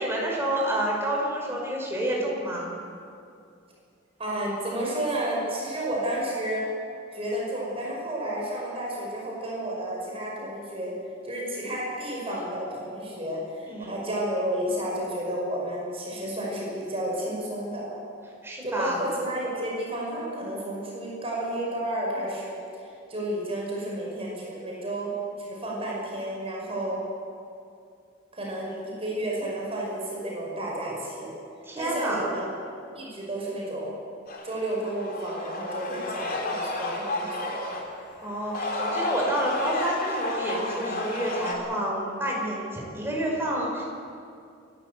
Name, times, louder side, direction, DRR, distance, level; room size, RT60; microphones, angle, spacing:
voice 1, 0.0-2.7 13.7-13.9 18.4-19.0 31.6-32.3 38.2-43.8, right 1 dB, 15° right, -2 dB, 5.4 m, -29 dB
voice 2, 4.2-6.6 7.1-10.9 11.2-17.9 18.6-22.6 23.1-25.1 25.4-27.0 28.3-31.3 31.8-33.9 34.4-37.9, right 1 dB, 30° right, -3 dB, 5.6 m, -31 dB
sound 1, 34.3-37.8 38.4-41.5, left 2 dB, 50° left, 3.4 m, -32 dB
28.5 x 12.5 x 8.3 m, 2.4 s
head